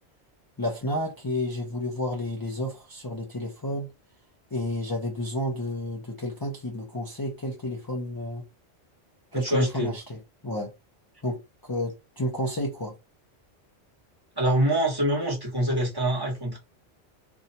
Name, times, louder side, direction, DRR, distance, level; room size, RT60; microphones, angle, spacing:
voice 1, 0.6-3.9 4.5-8.5 9.3-10.2 10.4-10.7 11.2-12.9, left 1 dB, 25° left, 0.5 m, -31 dB
voice 2, 9.3-9.9 14.4-16.6, right 1 dB, 20° right, 1.1 m, -25 dB
2.7 x 2.3 x 4.1 m
omnidirectional pair, 1.2 m